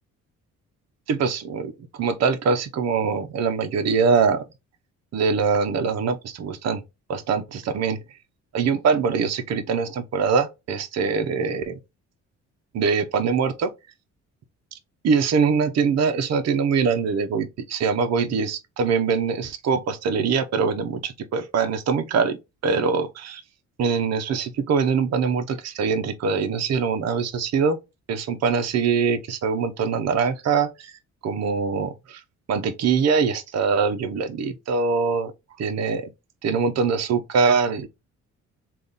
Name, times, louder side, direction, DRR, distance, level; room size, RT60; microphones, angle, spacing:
voice 1, 1.1-1.7 2.0-4.4 5.1-6.8 7.1-8.0 8.5-11.8 12.7-13.7 15.0-22.4 22.6-23.4 23.8-27.8 28.1-30.9 31.2-32.2 32.5-35.3 35.6-36.1 36.4-37.9, right 5 dB, 60° right, 0.7 m, -23 dB
3.5 x 2.5 x 3.9 m
cardioid pair, 90°, 30 cm